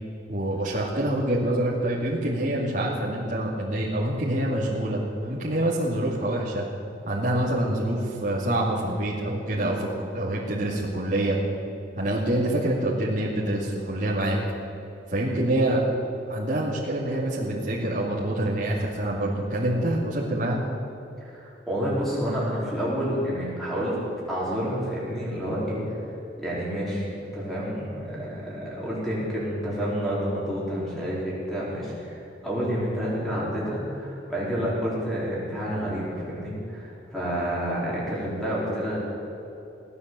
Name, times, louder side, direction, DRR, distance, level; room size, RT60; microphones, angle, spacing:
voice 1, 0.3-6.6 7.1-11.4 12.0-14.4 15.1-15.8 16.3-20.6, right 1 dB, 40° right, -7 dB, 2.5 m, -26 dB
voice 2, 21.2-23.9 24.3-39.0, equal, ahead, -7 dB, 4.4 m, -29 dB
17.5 x 9.8 x 7.7 m, 2.8 s
head